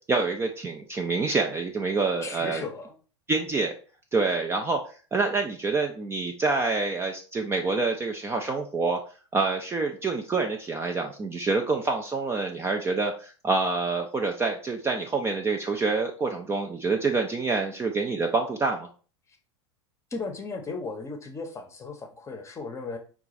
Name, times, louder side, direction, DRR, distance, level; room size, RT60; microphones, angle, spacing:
voice 1, 0.1-2.6 3.3-3.7 4.1-4.8 5.1-9.0 9.3-18.9, right 3 dB, 15° right, 3 dB, 0.5 m, -27 dB
voice 2, 2.2-3.0 20.1-23.0, left 4 dB, 20° left, 4 dB, 0.9 m, -36 dB
4.6 x 2.4 x 4.0 m, 0.38 s
figure-of-eight pair, 90°, 15 cm